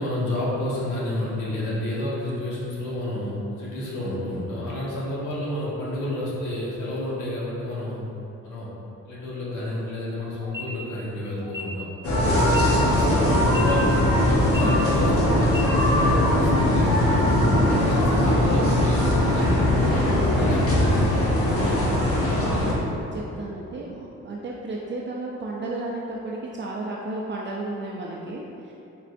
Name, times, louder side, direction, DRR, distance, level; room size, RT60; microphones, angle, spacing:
voice 1, 0.0-8.0 8.4-8.7 9.0-11.9 12.4-22.3, left 1 dB, 75° left, -7 dB, 1.2 m, -30 dB
sound 1, 10.4-10.6 11.4-11.6 12.4-12.6 13.4-13.6 14.4-14.6 15.4-15.6, left 4 dB, 10° right, 1.3 m, -35 dB
sound 2, 12.0-22.7, left 1 dB, 50° left, 1.0 m, -20 dB
voice 2, 23.1-28.7, right 2 dB, 40° right, -3 dB, 0.4 m, -33 dB
4.3 x 3.7 x 2.5 m, 2.9 s
cardioid pair, 90°, 30 cm